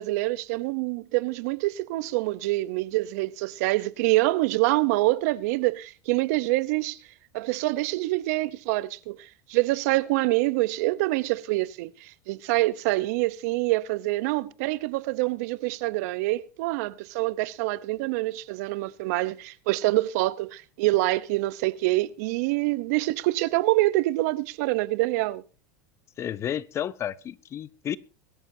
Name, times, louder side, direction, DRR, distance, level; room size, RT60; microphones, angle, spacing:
voice 1, 0.0-7.0 7.3-25.4, right 19 dB, 65° right, 0.9 m, -26 dB
voice 2, 26.2-28.0, left 10 dB, 30° left, 0.7 m, -31 dB
22.0 x 13.0 x 2.8 m
supercardioid pair, 130°, 9 cm